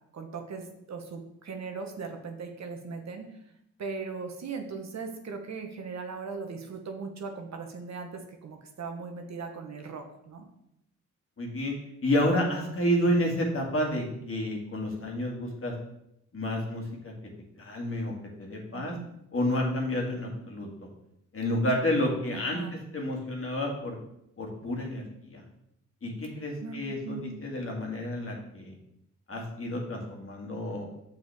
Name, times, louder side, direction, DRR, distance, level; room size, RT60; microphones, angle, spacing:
voice 1, 0.1-3.3 3.8-10.4 18.8-19.1 22.0-22.1 22.3-22.7 26.6-27.4, right 4 dB, 65° right, 4 dB, 1.1 m, -39 dB
voice 2, 11.4-11.8 12.0-15.7 16.3-17.1 17.6-18.9 19.3-20.9 21.3-24.0 24.4-25.4 26.0-28.7 29.3-30.9, left 1 dB, 45° left, 0 dB, 2.0 m, -30 dB
6.7 x 6.7 x 3.5 m, 0.80 s
cardioid pair, 85°, 29 cm